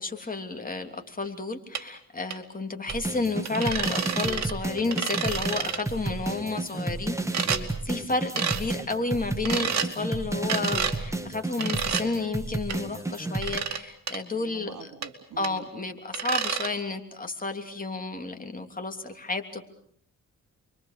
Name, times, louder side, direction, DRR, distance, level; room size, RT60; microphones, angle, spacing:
voice 1, 0.0-14.9 15.4-19.6, left 3 dB, 25° left, 5 dB, 3.2 m, -31 dB
sound 1, 1.7-1.8 2.3-2.4 2.9-3.0 3.4-4.5 4.8-5.8 7.3-7.6 8.4-8.6 9.4-9.9 10.5-11.0 11.6-12.0 12.7-12.8 13.4-13.8 14.1-14.2 15.0-15.1 15.4-15.5 16.1-16.7, right 7 dB, 60° right, 2.6 m, -29 dB
sound 2, 2.9-13.6, right 2 dB, 10° right, 2.1 m, -32 dB
voice 2, 14.3-15.6, right 6 dB, 80° right, 8 dB, 2.8 m, -45 dB
29.5 x 23.5 x 6.8 m, 0.65 s
cardioid pair, 100°, 31 cm